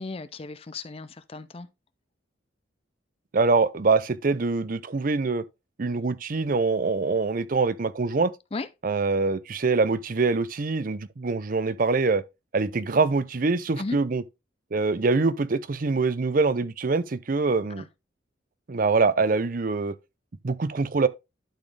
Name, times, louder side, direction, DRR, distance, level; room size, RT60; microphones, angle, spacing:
voice 1, 0.0-1.7 8.5-8.7 13.8-14.0 17.7-17.9, left 3 dB, 30° left, 0.4 m, -35 dB
voice 2, 3.3-5.4 5.8-8.3 8.8-12.2 12.5-14.2 14.7-17.8 18.7-19.9 20.4-21.1, right 4 dB, 45° right, 0.5 m, -24 dB
12.0 x 4.3 x 3.3 m
head